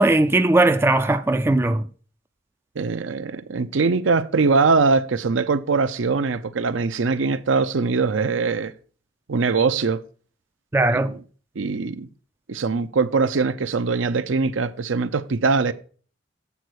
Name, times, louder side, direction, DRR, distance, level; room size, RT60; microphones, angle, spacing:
voice 1, 0.0-1.9 10.7-11.2, right 2 dB, 10° right, 0.3 m, -18 dB
voice 2, 2.8-8.7 9.3-10.0 11.6-12.1 12.5-15.7, right 4 dB, 75° right, 0.6 m, -22 dB
8.2 x 4.1 x 6.3 m
head